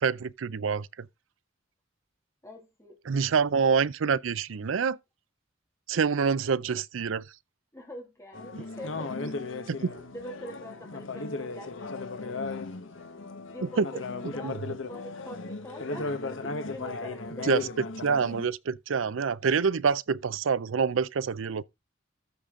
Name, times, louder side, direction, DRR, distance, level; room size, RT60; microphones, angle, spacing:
voice 1, 0.0-0.9 3.1-5.0 5.9-7.2 13.8-13.9 14.4-14.5 17.5-17.6 18.0-21.6, right 6 dB, 85° right, 0.5 m, -26 dB
voice 2, 2.4-3.3 7.7-9.3 9.8-12.6 13.5-17.4, equal, 15° left, 2.6 m, -45 dB
sound 1, 8.3-18.5, left 3 dB, 80° left, 1.1 m, -36 dB
14.0 x 5.2 x 3.7 m
head